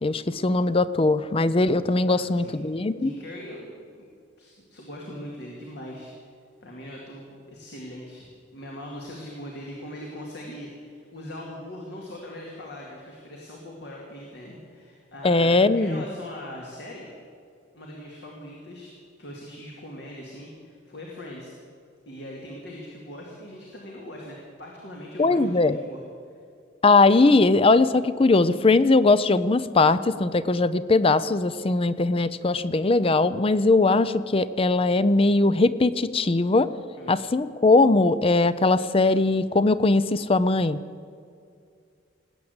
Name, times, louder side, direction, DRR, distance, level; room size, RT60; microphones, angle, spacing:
voice 1, 0.0-3.1 15.2-16.0 25.2-25.8 26.8-36.7 37.1-40.8, left 3 dB, 30° left, 15 dB, 0.5 m, -20 dB
voice 2, 2.1-2.6 3.0-4.1 4.4-6.1 6.6-8.2 8.5-17.1 17.7-18.9 19.2-21.5 22.1-26.0 37.0-37.2, left 1 dB, 65° left, -2 dB, 2.3 m, -41 dB
19.5 x 8.7 x 8.0 m, 2.3 s
head